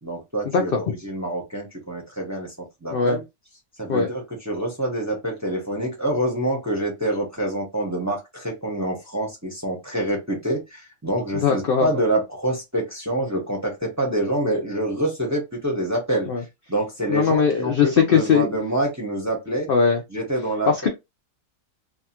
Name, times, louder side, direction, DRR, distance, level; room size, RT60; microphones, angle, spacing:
voice 1, 0.0-2.5 2.8-3.2 3.8-16.3 16.7-19.7 20.1-20.9, right 1 dB, 15° right, 0.6 m, -26 dB
voice 2, 0.5-0.9 2.9-3.2 3.9-4.1 11.4-11.9 16.3-16.4 17.1-18.5 19.7-20.0 20.7-20.9, left 6 dB, 80° left, 0.5 m, -20 dB
2.6 x 2.3 x 2.8 m
omnidirectional pair, 1.6 m